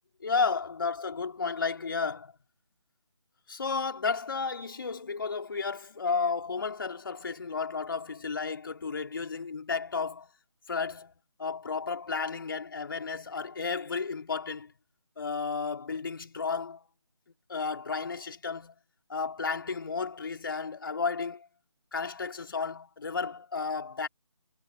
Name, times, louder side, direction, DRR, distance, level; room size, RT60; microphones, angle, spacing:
voice 1, 0.2-2.3 3.5-10.3 10.7-11.1 11.4-14.7 15.2-16.8 17.5-18.7 19.1-21.5 21.9-24.1, left 5 dB, 40° left, 3.0 m, -32 dB
figure-of-eight pair, 155°, 17 cm